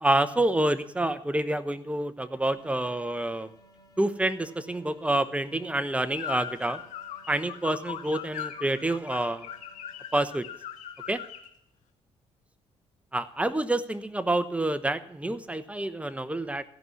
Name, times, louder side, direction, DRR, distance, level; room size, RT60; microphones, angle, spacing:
voice 1, 0.0-3.5 4.0-6.8 7.3-9.5 10.1-10.4 11.1-11.2 13.1-16.6, right 1 dB, 10° right, 13 dB, 1.0 m, -28 dB
sound 1, 2.6-10.7, right 1 dB, 30° left, 3.4 m, -58 dB
sound 2, 6.1-11.5, left 9 dB, 85° left, 1.7 m, -40 dB
15.5 x 5.5 x 9.8 m, 0.70 s
cardioid pair, 75°, 12 cm